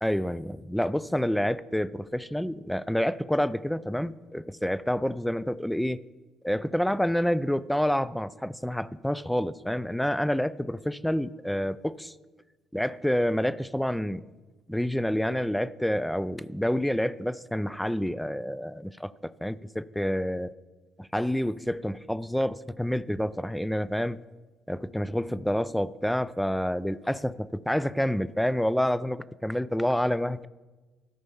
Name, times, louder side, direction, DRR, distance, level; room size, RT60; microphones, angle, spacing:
voice 1, 0.0-6.0 6.4-12.1 12.7-14.2 14.7-20.5 21.0-24.2 24.7-30.5, equal, 5° left, 18 dB, 0.3 m, -28 dB
13.0 x 5.4 x 7.0 m, 1.2 s
cardioid pair, 105°, 0 cm